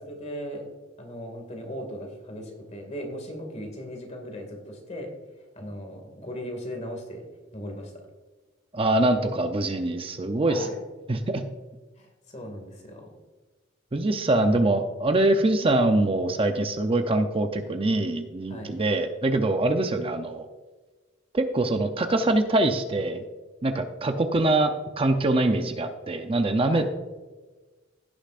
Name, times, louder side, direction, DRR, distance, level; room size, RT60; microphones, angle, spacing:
voice 1, 0.0-0.7 1.0-5.2 5.6-7.3 7.5-8.0 10.5-10.8 12.0-13.1 18.5-18.8 26.7-26.9, equal, 35° left, 3 dB, 2.2 m, -38 dB
voice 2, 8.7-10.7 11.1-11.4 13.9-20.5 21.3-23.2 23.6-24.7 25.0-26.8, right 2 dB, 30° right, 7 dB, 0.6 m, -24 dB
16.5 x 7.0 x 2.5 m, 1.3 s
head